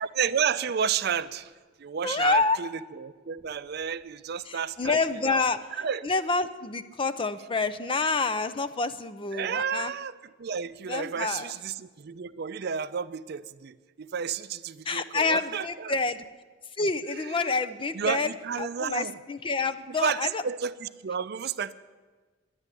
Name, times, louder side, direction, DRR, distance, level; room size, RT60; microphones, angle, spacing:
voice 1, 0.0-1.5 1.8-5.0 5.3-5.4 5.8-6.0 9.3-10.1 10.4-15.9 17.1-17.5 17.9-19.1 20.0-21.7, right 7 dB, 55° right, 14 dB, 0.5 m, -31 dB
voice 2, 2.0-2.6 4.5-9.9 10.9-11.5 14.8-16.2 16.8-18.3 18.6-20.4, left 3 dB, 25° left, 11 dB, 0.5 m, -28 dB
10.5 x 10.0 x 9.8 m, 1.4 s
head